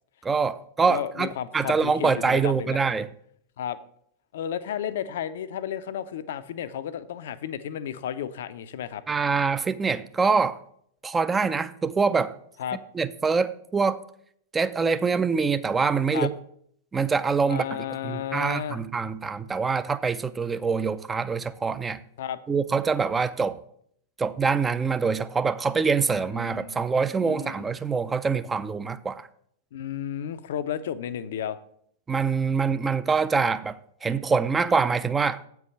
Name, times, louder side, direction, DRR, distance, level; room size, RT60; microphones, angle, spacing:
voice 1, 0.2-3.1 9.1-10.6 11.0-12.3 12.9-14.0 14.5-16.3 16.9-17.8 18.0-22.0 22.5-23.6 24.2-29.3 32.1-35.4, right 5 dB, 15° right, 0.5 m, -25 dB
voice 2, 0.9-2.8 3.6-3.8 4.3-9.0 12.6-12.8 16.1-16.3 17.5-18.8 22.2-22.4 26.1-26.8 27.2-27.7 29.7-31.6, left 9 dB, 60° left, 0.5 m, -33 dB
8.2 x 4.7 x 6.8 m
figure-of-eight pair, 90°, 0 cm